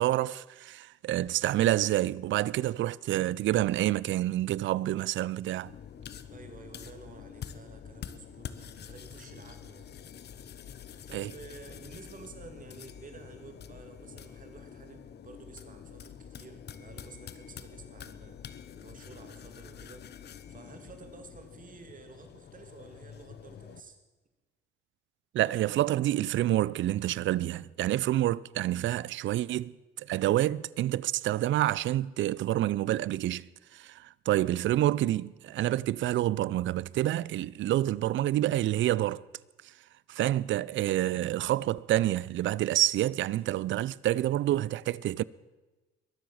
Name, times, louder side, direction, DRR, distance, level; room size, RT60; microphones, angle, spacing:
voice 1, 0.0-5.7 11.1-11.3 25.3-33.5 33.7-39.2 40.1-45.2, right 14 dB, 70° right, 0.5 m, -28 dB
sound 1, 5.6-23.8, left 8 dB, 55° left, 1.0 m, -47 dB
voice 2, 6.3-10.1 11.1-20.1 20.5-24.0, right 4 dB, 45° right, 2.5 m, -51 dB
22.5 x 7.8 x 7.2 m
cardioid pair, 90°, 20 cm